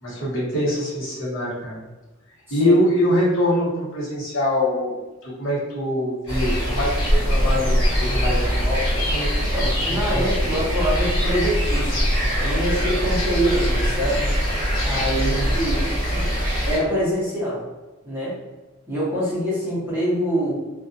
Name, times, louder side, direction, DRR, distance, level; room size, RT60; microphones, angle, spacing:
voice 1, 0.0-1.8 2.5-4.9 5.2-10.6 15.1-15.6, left 1 dB, 65° left, -7 dB, 1.1 m, -24 dB
sound 1, 6.3-16.8, equal, 20° left, 1.4 m, -22 dB
voice 2, 9.5-14.3 14.8-15.8 16.1-16.3 16.7-17.6 18.0-18.4 18.9-20.5, equal, 10° right, -9 dB, 0.8 m, -25 dB
2.4 x 2.4 x 2.6 m, 1.2 s
head